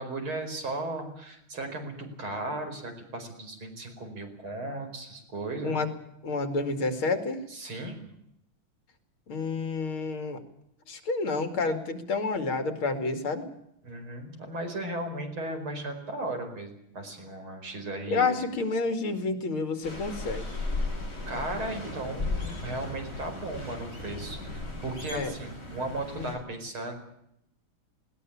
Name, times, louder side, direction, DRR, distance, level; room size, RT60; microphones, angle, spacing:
voice 1, 0.0-5.8 7.5-8.0 13.8-18.3 21.3-26.9, right 2 dB, 85° right, 5 dB, 5.7 m, -36 dB
voice 2, 6.2-7.4 9.3-10.4 10.9-13.5 18.1-20.5 25.1-25.3 26.2-26.3, left 3 dB, 85° left, 8 dB, 3.3 m, -29 dB
sound 1, 19.8-26.4, left 2 dB, 40° left, 6.5 m, -36 dB
20.5 x 18.5 x 8.6 m, 0.76 s
omnidirectional pair, 2.2 m